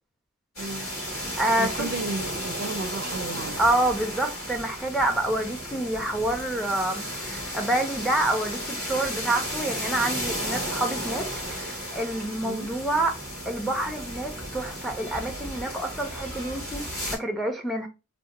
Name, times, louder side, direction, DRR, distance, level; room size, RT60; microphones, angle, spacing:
sound 1, 0.6-17.2, equal, 50° left, 1.6 m, -34 dB
voice 1, 0.6-0.9 1.6-3.6 12.4-12.7, right 3 dB, 55° right, 0.4 m, -33 dB
voice 2, 1.4-1.9 3.6-13.2 13.5-17.9, right 1 dB, ahead, 0.5 m, -27 dB
2.7 x 2.1 x 4.0 m
head